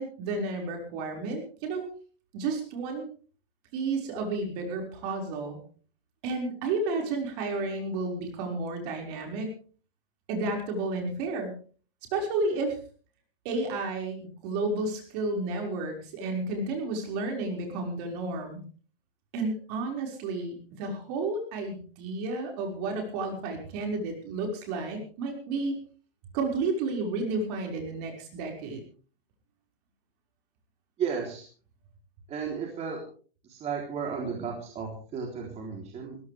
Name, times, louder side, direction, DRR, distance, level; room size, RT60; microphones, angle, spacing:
voice 1, 0.0-1.8 2.3-3.1 3.7-5.6 6.2-9.5 10.3-11.5 12.1-12.8 13.4-18.6 19.3-25.7 26.3-28.8, right 3 dB, 40° right, 3 dB, 5.6 m, -31 dB
voice 2, 31.0-31.5 32.3-33.0 33.5-36.2, right 6 dB, 20° right, 0 dB, 3.7 m, -33 dB
21.5 x 16.5 x 3.5 m, 0.41 s
hypercardioid pair, 155°, 31 cm